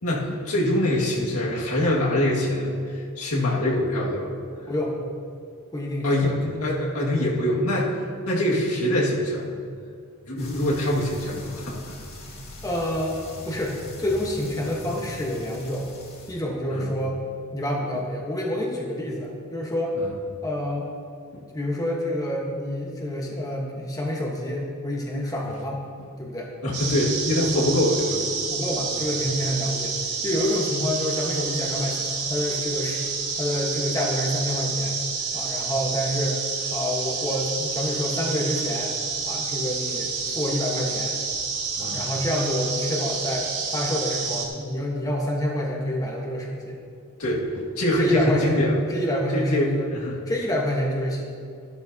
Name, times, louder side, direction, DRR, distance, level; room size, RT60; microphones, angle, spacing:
voice 1, 0.0-4.3 6.0-9.5 10.2-12.0 16.7-16.9 20.0-20.1 21.3-21.4 26.6-28.2 28.9-29.0 41.8-42.0 47.2-48.8 49.3-50.2, left 1 dB, 75° left, -4 dB, 2.0 m, -24 dB
voice 2, 4.7-5.0 5.7-6.3 12.6-13.2 13.5-15.9 16.3-17.2 17.5-20.0 20.4-20.9 21.5-25.8 26.2-26.5 27.5-27.7 28.5-29.9 30.2-32.0 32.3-33.0 33.4-35.0 35.3-36.4 36.7-38.9 39.3-40.1 40.3-41.1 41.8-46.8 48.0-48.6 48.9-49.9 50.3-51.3, equal, 15° left, -2 dB, 1.3 m, -27 dB
sound 1, 10.4-16.3, left 1 dB, 45° left, 2.5 m, -40 dB
sound 2, 26.7-44.5, right 5 dB, 85° right, 2.0 m, -29 dB
13.0 x 12.0 x 2.8 m, 2.2 s
head